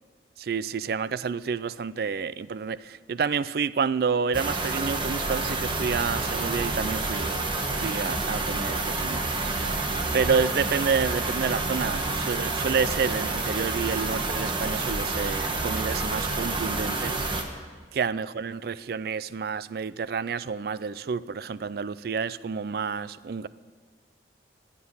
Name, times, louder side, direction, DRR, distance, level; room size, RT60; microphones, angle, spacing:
voice 1, 0.4-7.4 7.7-9.9 10.1-17.3 17.9-23.5, right 5 dB, 55° right, 0.4 m, -29 dB
sound 1, 4.3-17.4, right 2 dB, 25° right, 1.2 m, -28 dB
21.0 x 8.4 x 5.5 m
head